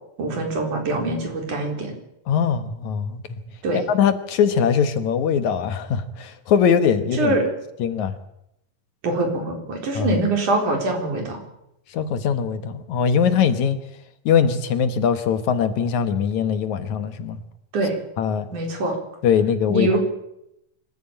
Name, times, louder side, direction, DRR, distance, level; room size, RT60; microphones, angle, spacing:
voice 1, 0.2-1.9 3.6-3.8 7.2-7.4 9.0-11.4 17.7-17.9 18.5-19.0 19.7-20.0, right 2 dB, 70° right, 3 dB, 5.7 m, -23 dB
voice 2, 2.3-3.4 3.9-7.3 7.8-8.1 10.0-10.2 11.9-13.8 14.3-17.4 18.2-18.5 19.2-20.0, left 7 dB, 70° left, 11 dB, 2.5 m, -21 dB
25.0 x 15.0 x 8.9 m, 0.82 s
omnidirectional pair, 3.7 m